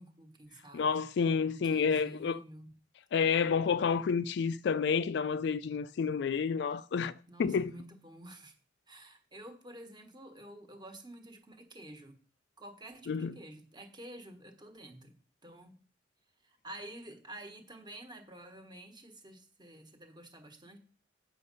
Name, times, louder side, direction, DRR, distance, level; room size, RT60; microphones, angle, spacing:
voice 1, 0.0-1.1 1.5-2.7 7.3-8.5 8.9-12.2 12.6-15.8 16.4-20.8, right 1 dB, 25° right, 1.3 m, -50 dB
voice 2, 0.7-2.4 3.1-7.1 7.4-7.7 13.1-13.3, left 6 dB, 60° left, 0.3 m, -29 dB
8.4 x 6.3 x 5.3 m
head